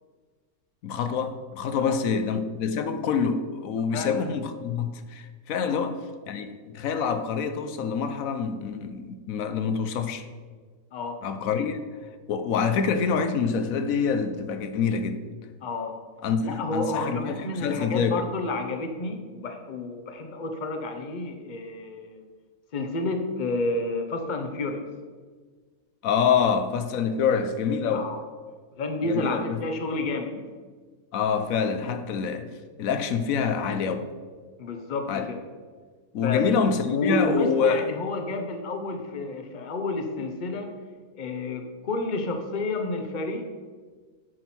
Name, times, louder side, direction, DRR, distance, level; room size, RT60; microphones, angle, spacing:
voice 1, 0.8-6.0 6.3-10.2 11.2-11.8 12.3-15.2 16.2-18.2 26.0-28.1 29.1-29.6 31.1-32.5 32.8-34.1 35.1-35.3 36.1-37.9, left 6 dB, 70° left, 1.0 m, -26 dB
voice 2, 3.9-4.3 5.6-5.9 10.9-11.2 11.6-11.7 15.6-16.0 16.4-22.2 22.7-24.9 27.9-28.2 28.8-30.5 34.6-35.4 36.2-36.4 36.9-40.8 41.2-43.5, left 2 dB, 40° left, 0.8 m, -30 dB
9.0 x 6.0 x 4.4 m
omnidirectional pair, 1.5 m